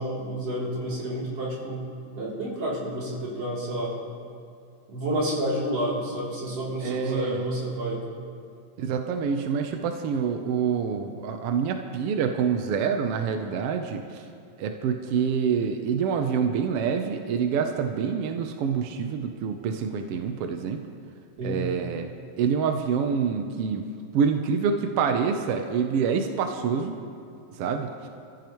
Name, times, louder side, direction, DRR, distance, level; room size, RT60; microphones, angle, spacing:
voice 1, 0.0-1.9 2.2-3.9 4.9-8.1 21.4-21.6, right 1 dB, 55° right, -6 dB, 4.2 m, -29 dB
voice 2, 6.8-7.5 8.8-14.2 14.6-20.8 21.4-22.1 22.4-23.8 24.1-26.9 27.5-28.1, right 6 dB, 70° right, 5 dB, 1.5 m, -26 dB
24.5 x 14.5 x 3.1 m, 2.4 s
omnidirectional pair, 3.3 m